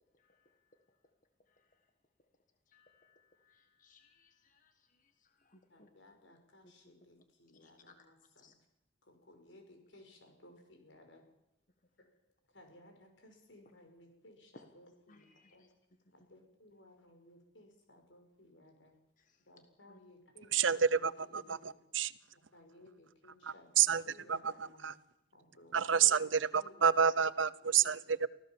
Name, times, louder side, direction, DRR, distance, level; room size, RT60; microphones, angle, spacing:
voice 1, 0.1-1.0 1.4-1.9 2.7-5.9 7.6-8.1 8.4-8.5 15.1-15.7 19.2-19.4 19.9-20.0, left 3 dB, 45° left, 6 dB, 1.6 m, -66 dB
voice 2, 5.7-8.5 9.0-11.2 12.0-12.1 12.5-15.7 16.1-19.0 19.4-21.8 22.3-24.9 25.3-27.2 27.6-28.0, left 1 dB, 75° left, 5 dB, 5.8 m, -60 dB
voice 3, 20.5-22.1 23.4-24.0 24.3-24.9 25.7-28.3, right 7 dB, 80° right, 18 dB, 0.8 m, -29 dB
24.5 x 16.0 x 7.4 m, 0.87 s
head